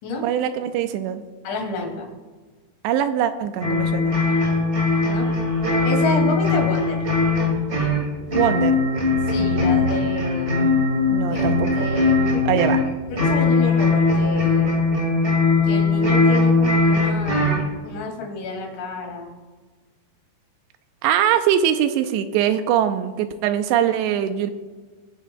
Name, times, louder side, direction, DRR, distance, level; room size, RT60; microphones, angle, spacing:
voice 1, 0.2-1.2 2.8-4.1 8.3-8.8 11.1-11.9 12.5-12.8 21.0-24.5, right 10 dB, 85° right, 9 dB, 2.8 m, -22 dB
voice 2, 1.4-2.1 5.0-5.3 5.8-7.0 9.2-10.5 11.3-12.6 13.1-14.7 15.6-19.3, left 3 dB, 85° left, 1 dB, 4.7 m, -30 dB
sound 1, 3.6-17.7, left 3 dB, 70° right, 0.6 m, -20 dB
23.5 x 9.4 x 2.3 m, 1.4 s
omnidirectional pair, 5.1 m